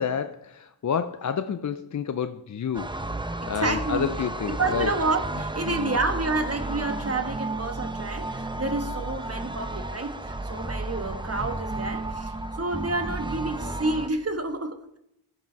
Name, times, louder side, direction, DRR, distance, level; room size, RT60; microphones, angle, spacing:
voice 1, 0.0-2.9 3.5-4.9 5.7-6.0, left 7 dB, 40° left, 11 dB, 0.5 m, -29 dB
sound 1, 2.7-14.1, right 2 dB, 10° right, 0.7 m, -33 dB
voice 2, 3.4-15.0, right 3 dB, 30° right, 7 dB, 1.3 m, -29 dB
15.0 x 5.1 x 4.6 m, 0.81 s
cardioid pair, 40°, 50 cm